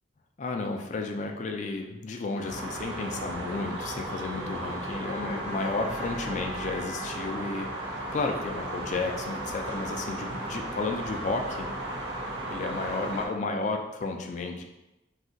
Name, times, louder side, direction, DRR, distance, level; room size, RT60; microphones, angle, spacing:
voice 1, 0.4-11.7 12.5-14.6, left 3 dB, 40° left, 3 dB, 0.3 m, -32 dB
sound 1, 2.3-13.3, right 1 dB, 75° right, 0.6 m, -35 dB
2.6 x 2.4 x 3.8 m, 0.98 s
head